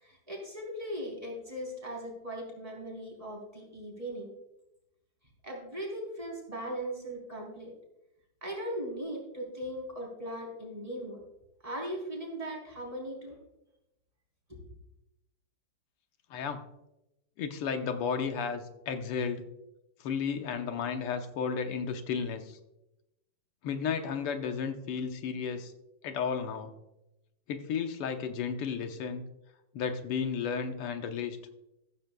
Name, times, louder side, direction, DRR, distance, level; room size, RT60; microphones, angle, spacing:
voice 1, 0.0-4.3 5.4-7.7 8.4-11.2 11.6-13.4 14.5-14.6, equal, 15° right, -2 dB, 3.7 m, -39 dB
voice 2, 16.3-16.6 17.4-19.4 20.0-22.6 23.6-25.7 26.0-26.7 27.5-29.2 29.7-31.4, left 6 dB, 85° left, 6 dB, 1.9 m, -33 dB
14.0 x 13.5 x 2.3 m, 0.90 s
omnidirectional pair, 2.4 m